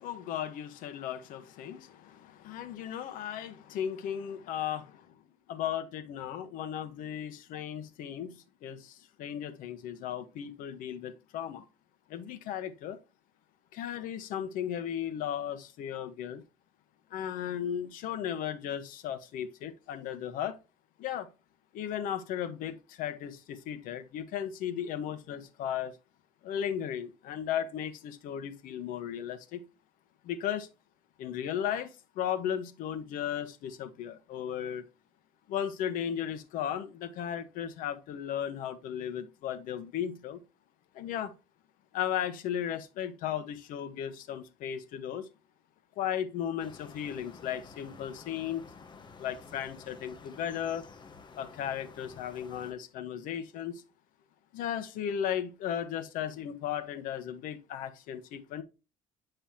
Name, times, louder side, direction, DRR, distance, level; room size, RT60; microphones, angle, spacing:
voice 1, 0.0-5.1 5.5-11.7 12.1-13.0 13.7-16.4 17.1-20.6 21.0-21.3 21.7-25.9 26.4-29.6 30.2-30.7 31.2-34.8 35.5-40.4 40.9-41.3 41.9-45.3 46.0-48.6 49.2-50.8 51.4-53.8 54.5-58.6, left 9 dB, 75° left, 1.1 m, -35 dB
sound 1, 46.6-52.7, left 4 dB, 30° left, 1.2 m, -51 dB
9.0 x 5.5 x 2.8 m
cardioid pair, 130°, 14 cm